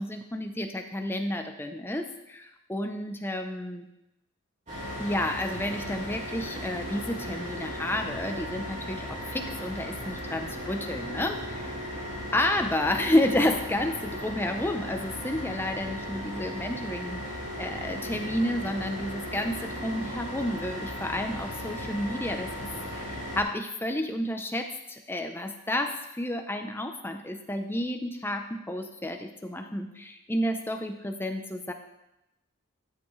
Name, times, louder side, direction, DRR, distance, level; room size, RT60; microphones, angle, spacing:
voice 1, 0.0-3.9 5.0-31.7, left 1 dB, 10° left, 5 dB, 0.6 m, -31 dB
sound 1, 4.7-23.4, equal, 35° right, 3.3 m, -36 dB
13.5 x 7.1 x 3.2 m, 0.89 s
head